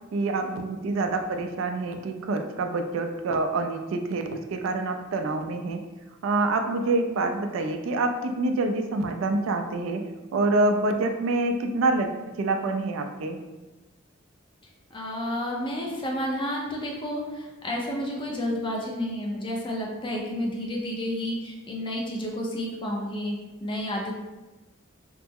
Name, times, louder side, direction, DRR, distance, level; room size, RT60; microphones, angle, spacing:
voice 1, 0.1-4.2 4.5-5.8 6.2-10.0 10.3-12.1 12.4-13.4, right 2 dB, 80° right, 6 dB, 0.3 m, -26 dB
voice 2, 14.9-23.4 23.6-24.1, left 1 dB, 25° left, -2 dB, 0.5 m, -30 dB
3.1 x 2.0 x 3.5 m, 1.1 s
head